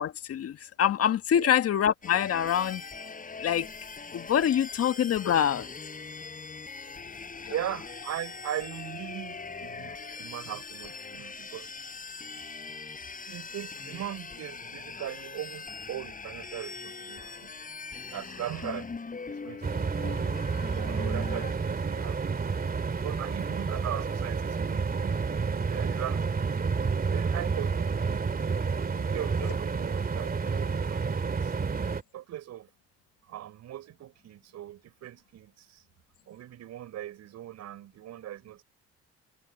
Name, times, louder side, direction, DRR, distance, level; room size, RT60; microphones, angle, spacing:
voice 1, 0.0-2.8 3.4-3.7 4.1-5.7, left 9 dB, 55° left, 1.7 m, -25 dB
sound 1, 2.0-21.5, left 4 dB, 30° left, 6.4 m, -41 dB
voice 2, 7.5-11.7 13.3-17.5 18.1-18.9 19.3-20.3 20.8-22.5 23.0-25.2 25.5-26.2 27.1-28.3 28.8-31.5 32.1-32.7 33.2-35.8 36.3-38.6, right 12 dB, 65° right, 6.6 m, -39 dB
sound 2, 19.6-32.0, right 5 dB, 30° right, 2.6 m, -30 dB
supercardioid pair, 75°, 29 cm